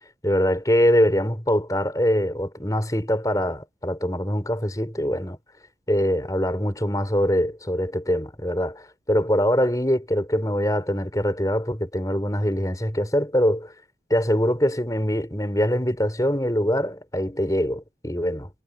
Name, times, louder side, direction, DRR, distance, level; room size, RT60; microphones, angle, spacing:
voice 1, 0.2-5.4 5.9-13.7 14.1-18.5, equal, 20° left, 4.3 m, -23 dB
head